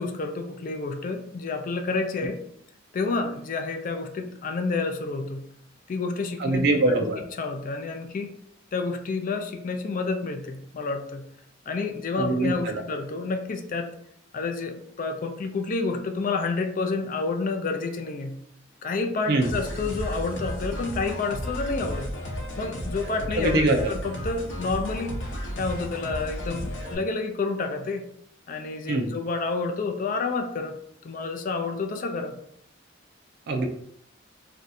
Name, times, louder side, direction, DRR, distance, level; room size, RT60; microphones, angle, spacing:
voice 1, 0.0-2.4 2.9-5.5 5.9-6.6 7.4-8.3 8.7-11.3 11.7-13.9 14.3-18.4 18.8-22.1 22.6-23.6 23.9-25.2 25.6-28.0 28.5-30.8 31.0-32.4, left 3 dB, 45° left, 6 dB, 0.4 m, -29 dB
voice 2, 6.4-7.2 12.2-12.8 19.3-19.5 23.3-23.9 28.9-29.1 33.5-33.7, right 2 dB, 55° right, 2 dB, 0.4 m, -23 dB
sound 1, 19.4-27.0, equal, 65° left, 0.8 m, -33 dB
2.6 x 2.3 x 4.0 m, 0.69 s
head